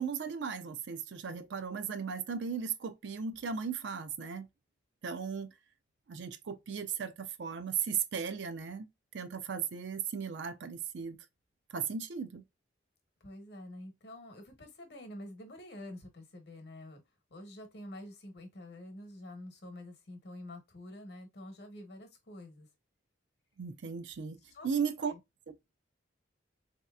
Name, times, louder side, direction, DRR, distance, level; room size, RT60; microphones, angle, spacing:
voice 1, 0.0-4.5 5.0-5.5 6.1-8.9 9.1-11.2 11.7-12.4 23.6-24.4 24.6-25.1, right 6 dB, 65° right, 0.4 m, -36 dB
voice 2, 13.2-17.0 17.3-22.7 24.5-24.7 25.1-25.2, left 1 dB, 55° left, 0.9 m, -48 dB
4.0 x 2.8 x 2.2 m
head